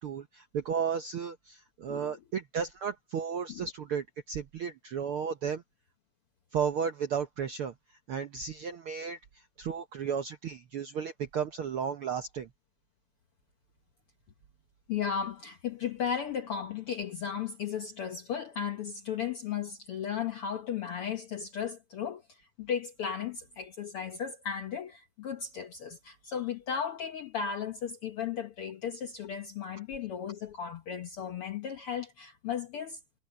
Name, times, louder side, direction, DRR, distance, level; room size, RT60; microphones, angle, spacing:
voice 1, 0.0-5.6 6.5-7.7 8.1-9.2 9.6-12.5, right 7 dB, 70° right, 1.3 m, -34 dB
voice 2, 1.9-2.2 3.5-3.7 14.9-33.0, left 7 dB, 70° left, 1.3 m, -35 dB
omnidirectional pair, 3.7 m